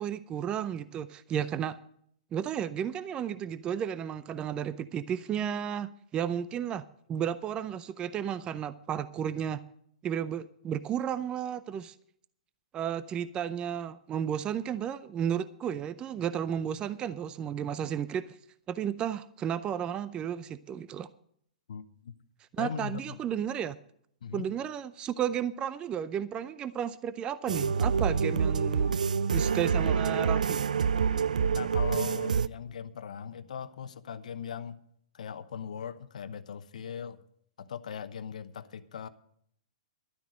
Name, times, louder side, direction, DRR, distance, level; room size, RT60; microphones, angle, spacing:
voice 1, 0.0-1.8 2.3-6.8 7.1-9.6 10.0-12.0 12.7-18.4 18.7-21.1 22.5-23.8 24.3-28.9 29.3-30.6, right 9 dB, 25° right, 0.5 m, -33 dB
voice 2, 21.7-22.1 22.6-23.2 24.2-24.5 31.5-34.8 35.1-37.2 37.6-39.1, left 7 dB, 70° left, 0.9 m, -39 dB
sound 1, 27.5-32.5, right 6 dB, 85° right, 0.4 m, -27 dB
12.0 x 9.3 x 6.3 m
hypercardioid pair, 125°, 4 cm